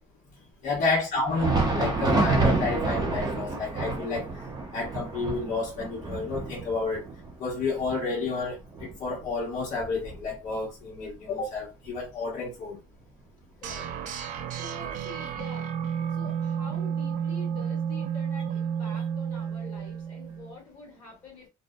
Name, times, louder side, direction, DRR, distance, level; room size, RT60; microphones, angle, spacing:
voice 1, 0.6-7.0 7.4-12.8, left 3 dB, 55° left, 1.1 m, -30 dB
Thunder, 1.2-10.6 11.0-11.1 11.8-12.0 13.0-13.1, right 3 dB, 25° right, 0.7 m, -29 dB
sound 1, 13.6-20.6, right 8 dB, 55° right, 0.4 m, -31 dB
voice 2, 14.5-15.7 16.1-21.5, left 3 dB, 30° left, 1.5 m, -46 dB
2.7 x 2.1 x 2.2 m
cardioid pair, 160°, 16 cm